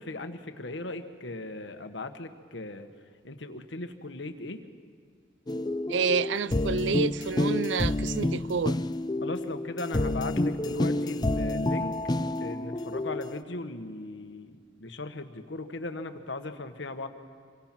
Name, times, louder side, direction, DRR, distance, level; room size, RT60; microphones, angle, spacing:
voice 1, 0.0-2.9 3.2-4.6 9.2-17.1, left 2 dB, 75° left, 1.4 m, -38 dB
sound 1, 5.5-13.4, left 1 dB, 20° left, 0.5 m, -29 dB
voice 2, 5.9-8.8, right 5 dB, 75° right, 0.5 m, -28 dB
26.5 x 23.5 x 6.0 m
head